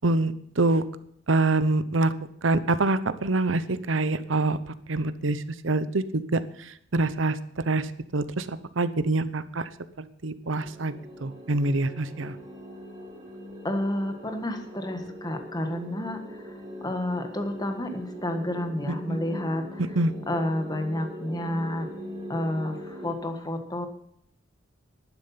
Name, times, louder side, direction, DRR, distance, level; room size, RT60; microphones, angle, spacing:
voice 1, 0.0-0.8 1.3-2.1 2.4-4.6 4.9-6.4 6.9-7.4 7.7-7.9 8.1-9.7 10.0-10.9 11.2-12.3 19.1-19.2 20.0-20.1, right 2 dB, 80° right, 13 dB, 0.9 m, -25 dB
sound 1, 10.4-23.2, equal, 25° right, 3.2 m, -41 dB
voice 2, 13.6-19.9 20.3-21.9 22.3-23.9, left 1 dB, 20° left, 6 dB, 1.6 m, -30 dB
11.5 x 10.5 x 5.7 m, 0.71 s
head